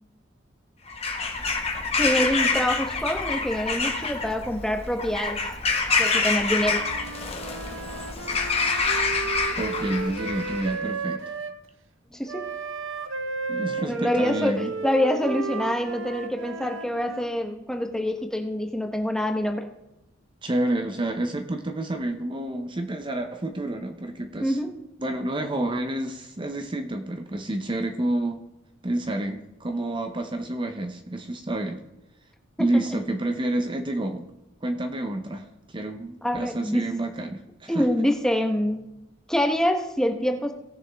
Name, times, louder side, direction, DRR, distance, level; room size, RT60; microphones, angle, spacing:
Bird vocalization bird call bird song / Crow, 0.9-10.8, left 4 dB, 30° left, 1.5 m, -27 dB
voice 1, 2.0-5.4 6.0-6.8 12.1-12.4 13.7-19.7 24.4-24.7 32.6-32.8 36.2-36.8 37.7-38.9 39.3-40.5, equal, 5° left, 4 dB, 1.0 m, -26 dB
Wind instrument woodwind instrument, 6.6-11.6 12.3-17.3, right 4 dB, 85° right, 0.8 m, -34 dB
voice 2, 9.6-11.3 13.5-14.7 20.4-24.6 25.0-28.4 28.8-31.8 32.6-34.3 34.6-37.9, right 1 dB, 25° right, 6 dB, 0.7 m, -29 dB
18.0 x 7.0 x 3.5 m, 0.92 s
head